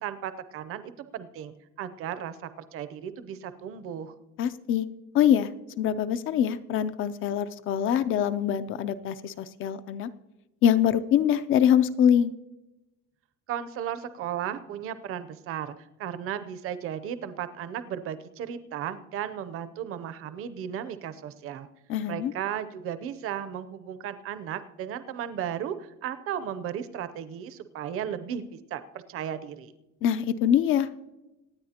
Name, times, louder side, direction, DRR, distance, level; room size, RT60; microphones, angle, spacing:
voice 1, 0.0-4.1 13.5-15.7 16.0-21.7 22.1-28.8 29.1-29.7, right 9 dB, 45° right, 12 dB, 0.7 m, -35 dB
voice 2, 4.4-4.9 5.1-5.5 5.8-10.1 10.6-12.3 21.9-22.3 30.0-31.1, left 9 dB, 40° left, 14 dB, 0.5 m, -24 dB
25.5 x 9.3 x 2.9 m, 1.0 s
cardioid pair, 180°, 31 cm